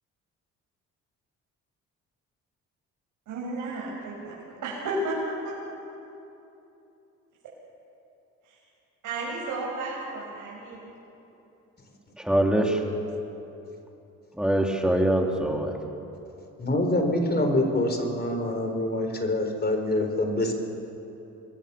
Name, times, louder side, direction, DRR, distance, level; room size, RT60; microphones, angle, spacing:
voice 1, 3.3-4.4 4.6-5.5 8.4-8.6 9.0-10.8, right 2 dB, 85° right, -6 dB, 6.2 m, -32 dB
voice 2, 12.2-12.8 14.4-15.7, right 1 dB, 5° right, 1 dB, 3.4 m, -23 dB
voice 3, 16.6-20.5, left 1 dB, 35° left, 5 dB, 4.4 m, -25 dB
27.0 x 21.5 x 7.1 m, 2.9 s
cardioid pair, 90°, 30 cm